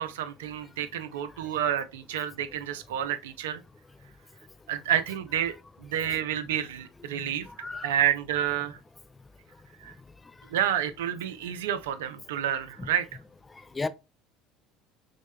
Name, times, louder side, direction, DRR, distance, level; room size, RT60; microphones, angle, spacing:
voice 1, 0.0-3.6 4.7-5.6 5.8-7.5 7.8-8.8 9.8-9.9 10.5-13.1, right 10 dB, 80° right, 0.4 m, -29 dB
voice 2, 7.5-7.9 12.8-12.9 13.5-13.9, left 3 dB, 20° left, 0.3 m, -34 dB
6.2 x 2.2 x 2.2 m
hypercardioid pair, 75°, 0 cm